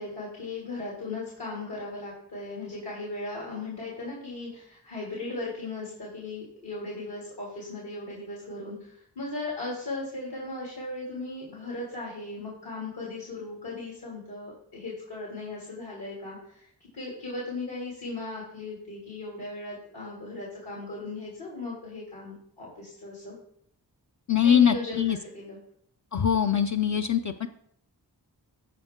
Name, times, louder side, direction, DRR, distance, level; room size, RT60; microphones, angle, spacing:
voice 1, 0.0-23.3 24.4-25.0 25.3-25.6, left 2 dB, 65° left, -4 dB, 3.0 m, -37 dB
voice 2, 24.3-25.2 26.1-27.5, left 8 dB, 40° left, 6 dB, 0.6 m, -22 dB
13.5 x 4.5 x 3.7 m, 0.69 s
cardioid pair, 40°, 43 cm